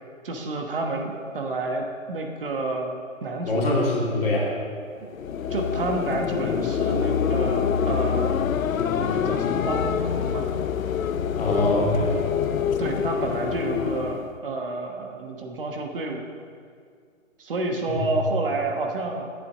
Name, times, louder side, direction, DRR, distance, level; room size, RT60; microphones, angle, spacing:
voice 1, 0.2-2.9 3.2-3.8 5.5-8.3 9.0-10.5 12.8-16.3 17.4-19.3, right 2 dB, 40° right, 2 dB, 1.2 m, -29 dB
voice 2, 3.4-4.5 11.4-12.2 17.9-18.0, left 2 dB, 45° left, -2 dB, 2.5 m, -23 dB
sound 1, 5.0-14.4, left 7 dB, 80° left, 0.6 m, -26 dB
8.9 x 6.8 x 7.1 m, 2.1 s
hypercardioid pair, 155°, 40 cm